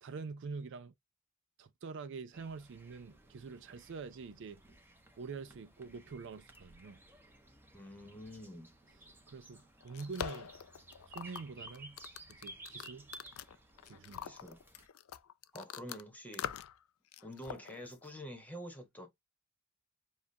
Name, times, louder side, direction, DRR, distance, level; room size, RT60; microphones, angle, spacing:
voice 1, 0.0-0.9 1.6-4.6 5.2-7.0 9.3-10.5 11.1-12.0 12.3-13.1 13.9-14.3, right 4 dB, 60° right, 0.4 m, -45 dB
sound 1, 2.3-14.9, right 2 dB, 10° right, 0.9 m, -56 dB
voice 2, 7.7-8.7 14.2-14.6 15.5-16.5 17.2-19.1, equal, 5° left, 1.2 m, -47 dB
sound 2, 9.6-16.0 16.3-16.8 17.1-18.1, left 8 dB, 80° left, 0.4 m, -44 dB
7.2 x 2.4 x 2.7 m
head